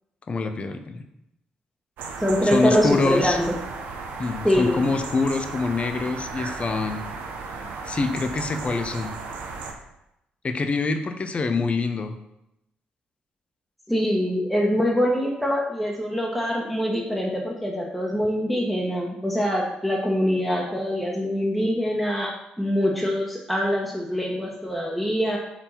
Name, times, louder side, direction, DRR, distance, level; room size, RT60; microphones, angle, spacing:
voice 1, 0.3-1.0 2.4-3.4 4.2-7.0 7.9-9.1 10.4-12.1, left 3 dB, 35° left, 7 dB, 0.6 m, -25 dB
sound 1, 2.0-9.7, right 4 dB, 75° right, 0.8 m, -35 dB
voice 2, 2.2-3.5 4.4-4.8 13.9-25.4, equal, ahead, -3 dB, 1.2 m, -24 dB
4.8 x 3.6 x 5.6 m, 0.86 s
supercardioid pair, 60°, 3 cm